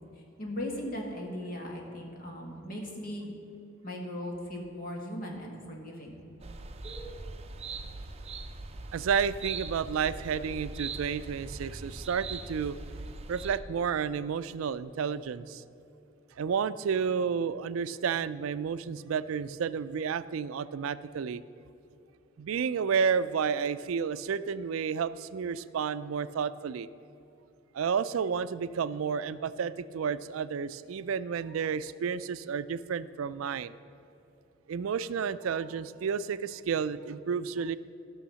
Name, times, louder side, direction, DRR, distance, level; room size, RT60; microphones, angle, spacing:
voice 1, 0.4-3.3 3.8-6.1, left 1 dB, 45° left, 0 dB, 2.0 m, -38 dB
sound 1, 6.4-13.6, right 3 dB, 30° right, 0.6 m, -41 dB
voice 2, 8.9-12.8 13.3-15.6 16.4-21.4 22.4-26.9 27.7-33.7 34.7-37.8, right 6 dB, 85° right, 15 dB, 0.4 m, -31 dB
14.0 x 6.4 x 6.3 m, 2.9 s
head